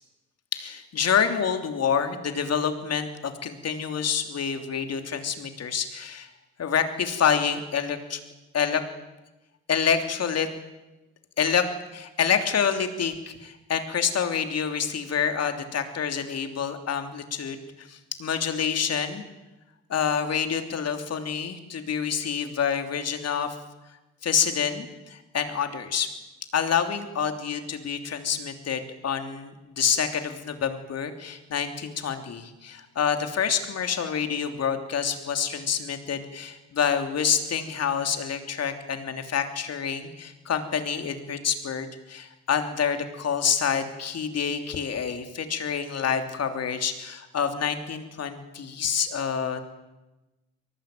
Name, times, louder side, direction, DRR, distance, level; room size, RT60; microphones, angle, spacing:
voice 1, 0.5-6.3 6.6-8.2 8.5-8.8 9.7-10.5 11.4-11.7 11.9-19.2 19.9-23.6 24.2-26.1 26.5-49.6, left 7 dB, 55° left, 7 dB, 3.2 m, -27 dB
23.0 x 18.5 x 9.2 m, 1.1 s
cardioid pair, 90°, 30 cm